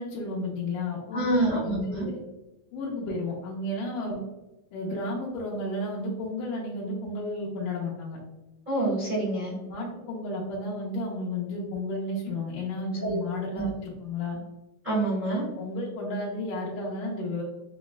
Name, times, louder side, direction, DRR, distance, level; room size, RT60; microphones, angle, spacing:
voice 1, 0.0-2.2 2.7-4.2 4.7-8.2 9.7-14.4 15.3-17.4, left 2 dB, 85° left, -5 dB, 2.2 m, -32 dB
voice 2, 1.1-2.0 8.7-9.5 13.0-13.2 13.5-13.7 14.8-15.4, right 2 dB, 75° right, -7 dB, 0.4 m, -27 dB
5.7 x 2.0 x 2.2 m, 1.1 s
omnidirectional pair, 3.6 m